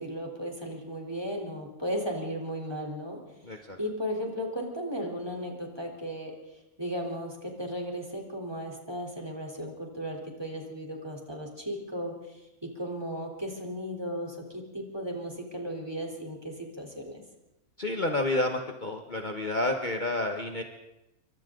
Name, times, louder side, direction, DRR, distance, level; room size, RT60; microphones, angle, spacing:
voice 1, 0.0-3.2 3.8-6.3 6.8-17.2, equal, 15° right, 1 dB, 3.8 m, -35 dB
voice 2, 3.5-3.8 17.8-20.6, left 2 dB, 35° left, 3 dB, 1.5 m, -29 dB
28.0 x 24.5 x 3.9 m, 0.94 s
omnidirectional pair, 1.5 m